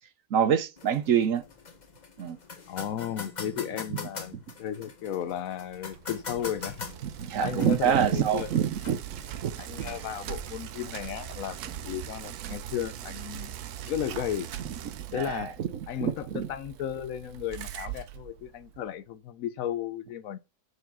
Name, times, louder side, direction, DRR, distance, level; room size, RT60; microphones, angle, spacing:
voice 1, 0.3-1.4 2.2-2.4 7.2-9.5 9.8-9.9 15.1-15.5 16.0-16.5, right 8 dB, 65° right, 1.1 m, -26 dB
sound 1, 0.8-10.8, left 4 dB, 30° left, 1.1 m, -44 dB
voice 2, 2.7-6.9 7.4-8.6 9.6-13.6 13.9-14.5 15.1-15.6 15.9-20.4, left 10 dB, 70° left, 1.0 m, -34 dB
Bicycle, 5.7-18.9, right 11 dB, 90° right, 1.2 m, -41 dB
6.4 x 4.9 x 6.0 m
omnidirectional pair, 1.6 m